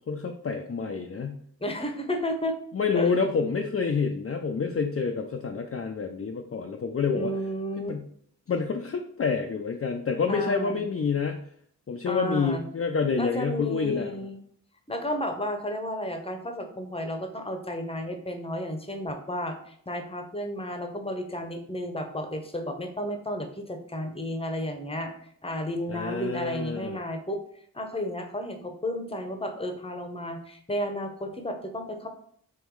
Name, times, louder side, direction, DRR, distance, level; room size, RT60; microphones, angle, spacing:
voice 1, 0.1-1.4 2.7-7.3 7.8-8.0 8.5-11.4 11.9-14.1 25.9-27.0, left 5 dB, 35° left, 3 dB, 0.5 m, -28 dB
voice 2, 1.6-2.6 2.9-3.1 7.1-8.0 10.3-10.8 12.1-12.6 13.1-14.4 14.9-27.4 27.7-32.1, equal, 15° left, 6 dB, 0.9 m, -32 dB
3.7 x 3.0 x 4.6 m, 0.64 s
cardioid pair, 45°, 38 cm